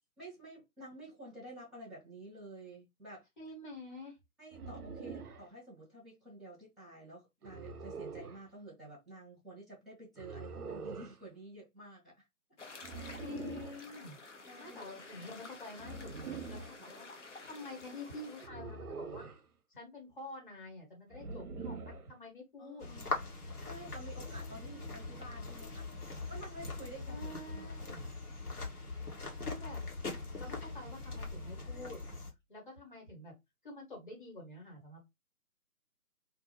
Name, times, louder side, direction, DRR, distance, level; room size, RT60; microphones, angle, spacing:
voice 1, 0.2-3.3 4.4-12.2 14.4-14.9 16.8-16.9 22.6-23.2 23.6-25.9 26.3-27.9, right 1 dB, ahead, 0.6 m, -51 dB
voice 2, 3.4-4.2 13.2-14.2 14.6-17.1 17.5-19.3 19.7-22.9 27.1-28.1 29.4-29.8 30.4-32.0 32.5-33.3 33.6-35.0, left 2 dB, 35° left, 1.3 m, -48 dB
sound 1, 4.5-5.5 7.4-8.4 10.2-11.2 12.8-13.8 15.8-16.8 18.4-19.5 21.1-22.1, right 4 dB, 75° right, 0.6 m, -44 dB
sound 2, 12.6-18.5, left 3 dB, 50° left, 0.7 m, -51 dB
sound 3, 22.8-32.3, left 3 dB, 80° left, 1.2 m, -41 dB
2.5 x 2.3 x 2.9 m
figure-of-eight pair, 150°, 45 cm